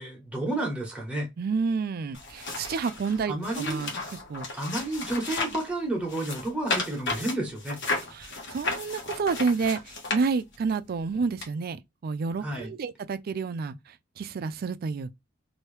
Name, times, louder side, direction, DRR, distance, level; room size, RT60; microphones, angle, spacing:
voice 1, 0.0-1.3 3.3-4.0 4.5-7.8 12.4-12.7, right 1 dB, 5° right, 1.2 m, -31 dB
voice 2, 1.4-3.9 4.3-4.5 8.1-15.1, right 4 dB, 50° right, 0.4 m, -30 dB
sound 1, 2.1-5.7 6.1-10.7 11.4-11.5, left 3 dB, 60° left, 1.2 m, -34 dB
3.0 x 2.7 x 3.2 m
head